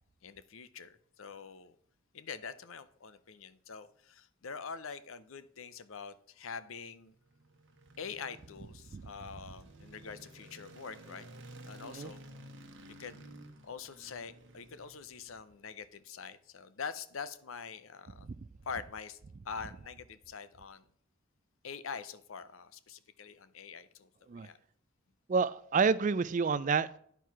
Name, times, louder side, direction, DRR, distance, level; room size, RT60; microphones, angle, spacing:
voice 1, 0.2-1.8 2.1-7.1 8.0-11.3 11.6-12.2 13.0-13.2 13.6-18.3 18.6-19.2 19.4-20.8 21.6-24.6, left 6 dB, 70° left, 0.6 m, -45 dB
sound 1, 7.1-15.5, right 1 dB, 60° right, 1.1 m, -53 dB
voice 2, 25.3-27.0, right 5 dB, 35° right, 0.3 m, -29 dB
10.0 x 4.7 x 5.8 m
head